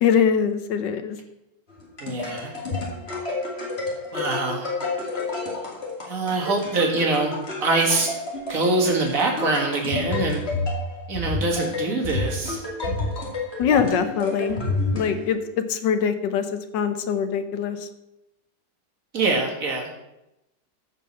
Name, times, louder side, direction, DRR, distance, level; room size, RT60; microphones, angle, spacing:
voice 1, 0.0-1.2 13.6-14.6 14.9-15.4 15.7-17.9, left 7 dB, 85° left, 9 dB, 1.5 m, -23 dB
sound 1, 1.7-15.6, left 2 dB, 35° left, 2.6 m, -30 dB
voice 2, 2.0-2.5 4.1-4.7 6.0-7.3 7.6-8.2 8.5-10.4 11.1-12.6 19.1-19.9, right 3 dB, 50° right, 1 dB, 2.3 m, -24 dB
14.0 x 5.5 x 5.6 m, 0.90 s
omnidirectional pair, 1.9 m